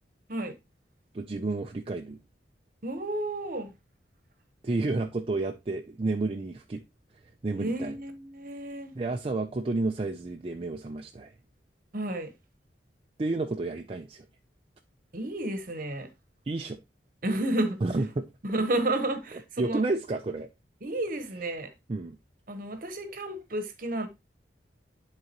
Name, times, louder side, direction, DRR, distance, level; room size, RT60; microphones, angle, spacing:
voice 1, 1.1-2.2 4.6-6.8 7.4-7.9 8.9-11.3 13.2-14.2 16.5-16.8 17.8-18.3 19.6-20.5 21.9-22.2, right 2 dB, 30° right, 0.4 m, -30 dB
voice 2, 2.8-3.7 7.6-8.9 11.9-12.3 15.1-16.1 17.2-17.8 18.4-19.8 20.8-21.7 22.5-24.1, right 1 dB, 50° right, 1.0 m, -31 dB
11.0 x 3.8 x 2.9 m
head